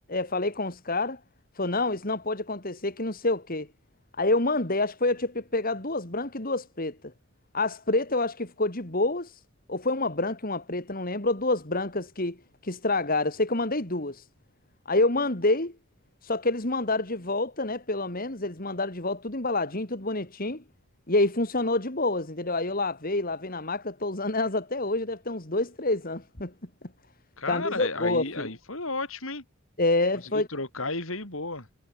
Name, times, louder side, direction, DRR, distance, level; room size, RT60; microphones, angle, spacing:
voice 1, 0.1-1.2 1.5-3.7 4.1-7.0 7.5-9.4 9.7-12.4 12.6-14.2 14.8-15.7 16.2-20.6 21.1-26.5 27.5-28.5 29.8-30.5, left 2 dB, 40° left, 2.9 m, -27 dB
voice 2, 27.4-29.4 30.3-31.7, left 3 dB, 65° left, 6.8 m, -33 dB
head